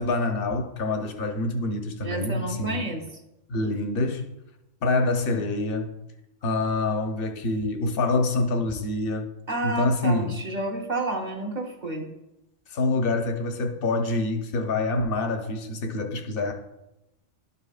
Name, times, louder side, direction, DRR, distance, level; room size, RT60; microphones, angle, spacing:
voice 1, 0.0-2.9 3.5-4.3 4.8-5.9 6.4-9.3 9.6-10.4 12.7-16.5, left 2 dB, 50° left, 1.0 m, -26 dB
voice 2, 2.0-3.0 9.5-12.1, right 2 dB, 35° right, 1.2 m, -30 dB
12.0 x 5.6 x 2.4 m
omnidirectional pair, 1.3 m